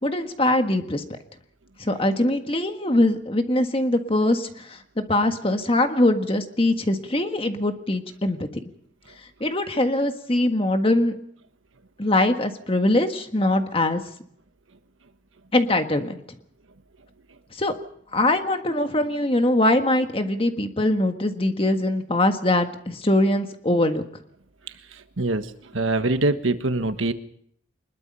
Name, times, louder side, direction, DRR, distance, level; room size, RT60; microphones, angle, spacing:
voice 1, 0.0-1.2 1.8-4.8 5.1-8.4 9.4-11.1 12.0-14.0 15.5-16.2 17.5-17.7 18.1-24.0, left 1 dB, 30° left, 6 dB, 1.6 m, -22 dB
voice 2, 25.7-27.1, right 2 dB, 85° right, 9 dB, 1.4 m, -23 dB
23.5 x 21.0 x 5.6 m, 0.68 s
head